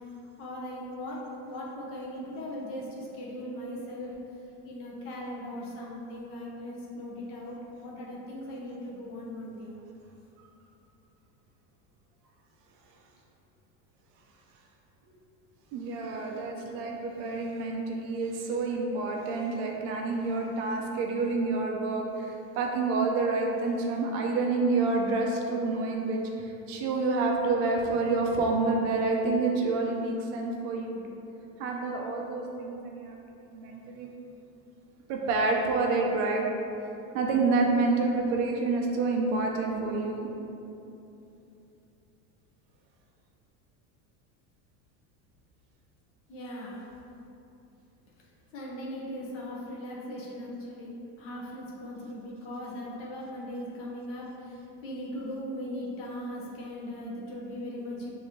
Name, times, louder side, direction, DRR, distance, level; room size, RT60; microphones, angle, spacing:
voice 1, 0.4-4.1 4.6-9.7 46.3-46.9 48.5-58.1, left 1 dB, 35° left, -4 dB, 0.8 m, -39 dB
voice 2, 15.7-31.2 31.6-34.1 35.1-36.4 37.1-40.3, right 3 dB, 35° right, 0 dB, 0.5 m, -28 dB
6.4 x 2.7 x 3.0 m, 2.9 s
cardioid pair, 180°, 38 cm